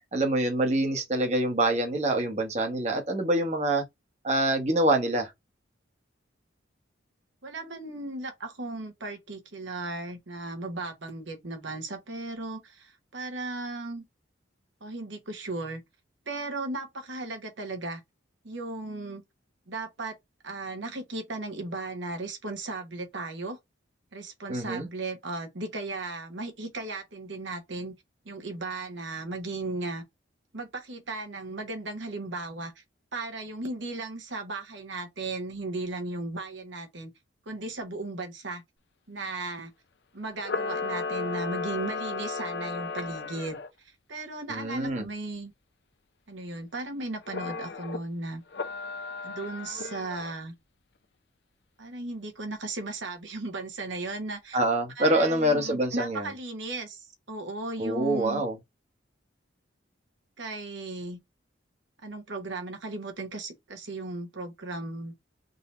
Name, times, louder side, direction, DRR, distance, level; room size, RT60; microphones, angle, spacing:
voice 1, 0.1-3.8 4.2-5.3 24.5-24.9 44.5-45.0 54.5-56.3 57.8-58.6, right 1 dB, 35° right, 1.0 m, -25 dB
voice 2, 7.4-14.0 14.8-15.8 16.3-18.0 18.4-19.2 19.7-20.2 20.4-23.6 24.1-27.9 28.2-30.0 30.5-32.8 33.1-37.1 37.4-38.6 39.1-39.7 40.1-45.5 46.3-48.4 49.2-50.5 51.8-54.6 54.9-58.4 60.4-61.2 62.0-65.1, right 2 dB, 70° right, 1.2 m, -36 dB
Camera, 40.4-43.7 47.3-48.0 48.5-50.3, left 4 dB, 60° left, 0.6 m, -34 dB
3.9 x 2.8 x 4.2 m
head